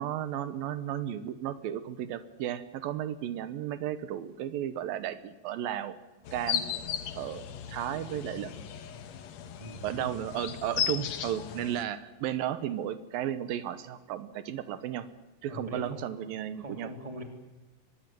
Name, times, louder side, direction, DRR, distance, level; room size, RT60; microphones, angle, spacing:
voice 1, 0.0-6.0 6.3-6.7 7.2-8.5 9.8-15.1 15.4-16.9, right 11 dB, 85° right, 13 dB, 2.8 m, -34 dB
sound 1, 6.2-11.8, left 9 dB, 60° left, 2.1 m, -36 dB
voice 2, 9.6-10.1 15.5-16.0 16.6-17.2, equal, 10° right, 4 dB, 2.9 m, -41 dB
24.5 x 20.5 x 7.7 m, 1.1 s
omnidirectional pair, 4.0 m